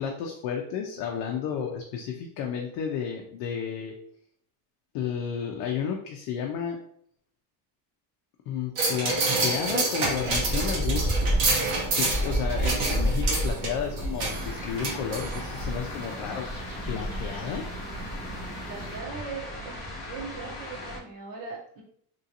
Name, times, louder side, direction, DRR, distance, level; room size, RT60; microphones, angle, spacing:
voice 1, 0.0-3.9 4.9-6.8 8.5-9.2 9.4-11.3 11.9-16.5 16.9-17.6, left 7 dB, 60° left, 1 dB, 0.5 m, -32 dB
sound 1, 8.8-15.6 16.0-16.1, right 2 dB, 80° right, 1.3 m, -28 dB
sound 2, 10.2-19.0, right 1 dB, 20° right, 0.6 m, -31 dB
sound 3, 14.3-21.0, left 1 dB, 20° left, 0.7 m, -39 dB
voice 2, 18.6-19.8 20.1-21.8, right 4 dB, 45° right, -2 dB, 0.9 m, -39 dB
3.0 x 2.5 x 2.7 m, 0.65 s
cardioid pair, 175°, 46 cm